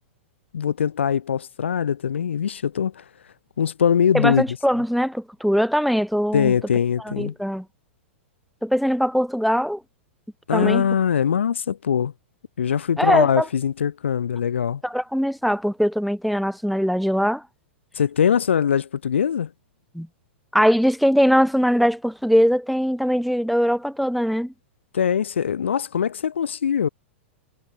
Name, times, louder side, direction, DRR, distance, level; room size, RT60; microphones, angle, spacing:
voice 1, 0.5-3.0 3.6-4.4 6.3-7.3 10.5-12.1 12.6-14.8 18.0-19.5 24.9-26.9, left 8 dB, 70° left, 4.3 m, -22 dB
voice 2, 4.1-6.5 7.0-7.6 8.6-9.8 10.5-10.9 13.0-13.5 14.8-17.4 19.9-20.1 20.5-24.5, equal, ahead, 3.0 m, -21 dB
figure-of-eight pair, 100°, 7 cm